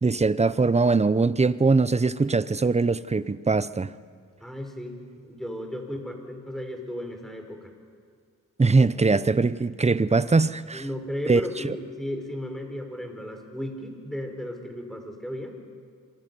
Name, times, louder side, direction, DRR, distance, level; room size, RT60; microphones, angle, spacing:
voice 1, 0.0-3.9 8.6-10.8 11.3-11.8, right 3 dB, 20° right, 0.6 m, -22 dB
voice 2, 4.4-7.7 10.7-15.6, left 1 dB, ahead, 4.4 m, -35 dB
26.5 x 23.5 x 5.5 m
cardioid pair, 75°, 35 cm